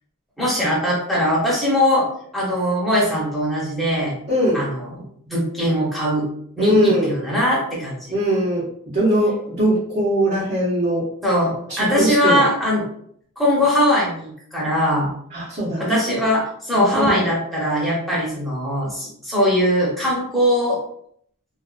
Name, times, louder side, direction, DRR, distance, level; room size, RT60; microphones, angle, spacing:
voice 1, 0.4-2.1 2.3-4.1 4.5-6.3 6.6-8.0 11.2-12.8 13.4-15.1 15.8-20.8, equal, ahead, -6 dB, 0.8 m, -21 dB
voice 2, 4.3-4.6 6.6-7.1 8.1-11.0 11.7-12.4 15.3-16.0 16.7-17.2, right 1 dB, 40° right, -7 dB, 0.7 m, -20 dB
2.5 x 2.4 x 2.3 m, 0.65 s
head